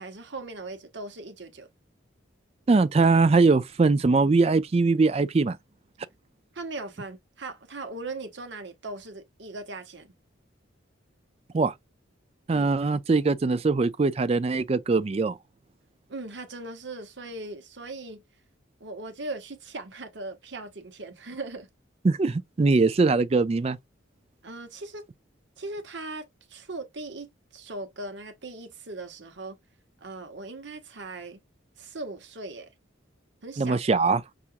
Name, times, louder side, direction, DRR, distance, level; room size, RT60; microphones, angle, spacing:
voice 1, 0.0-1.7 6.5-10.1 12.5-12.7 16.1-18.2 18.8-21.7 24.4-25.0 25.6-29.6 30.0-31.4 31.8-32.7 33.4-33.8, right 2 dB, 60° right, 1.0 m, -39 dB
voice 2, 2.7-5.6 11.5-11.7 12.5-15.4 22.0-23.8 33.6-34.2, right 3 dB, 30° right, 0.3 m, -22 dB
5.7 x 2.5 x 2.5 m
head